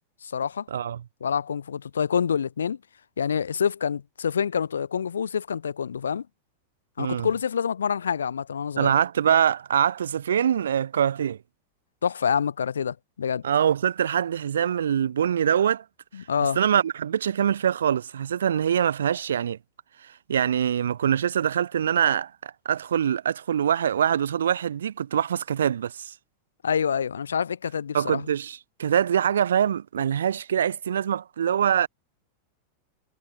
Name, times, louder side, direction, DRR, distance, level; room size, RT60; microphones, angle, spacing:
voice 1, 0.2-0.7 1.2-2.8 3.2-6.3 7.0-8.9 12.0-13.4 16.1-16.6 26.6-28.2, left 7 dB, 70° left, 0.7 m, -27 dB
voice 2, 8.8-11.4 13.4-15.8 16.4-19.6 20.3-26.1 27.9-31.9, right 9 dB, 65° right, 0.5 m, -24 dB
figure-of-eight pair, 90°, 0 cm